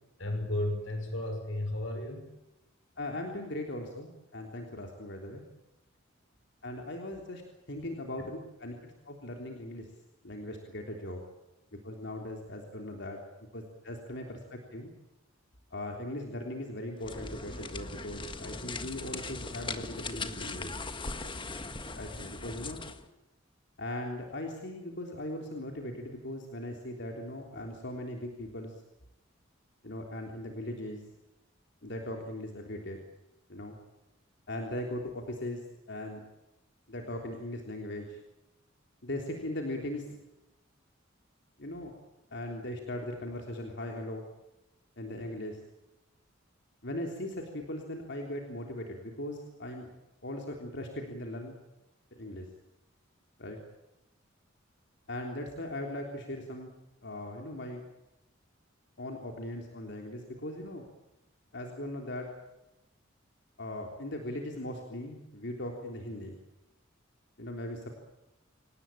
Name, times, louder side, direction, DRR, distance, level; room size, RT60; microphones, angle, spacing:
voice 1, 0.2-2.3, left 1 dB, 85° left, 5 dB, 6.1 m, -33 dB
voice 2, 3.0-5.4 6.6-7.4 7.7-9.9 10.2-11.2 11.8-13.2 13.5-14.9 15.7-20.7 22.0-22.8 23.8-28.7 29.8-31.0 31.8-33.0 33.5-33.8 34.5-35.6 35.9-36.2 36.9-38.2 39.0-40.1 41.6-41.9 42.3-44.3 45.0-45.6 46.8-49.9 50.2-51.6 52.2-52.5 53.4-53.6 55.1-56.7 57.0-57.8 59.0-60.9 61.5-62.3 63.6-66.4 67.4-67.9, left 1 dB, 60° left, 2 dB, 3.5 m, -39 dB
sound 1, 17.0-23.0, left 3 dB, 25° left, 1.6 m, -39 dB
27.0 x 18.5 x 9.0 m, 0.96 s
head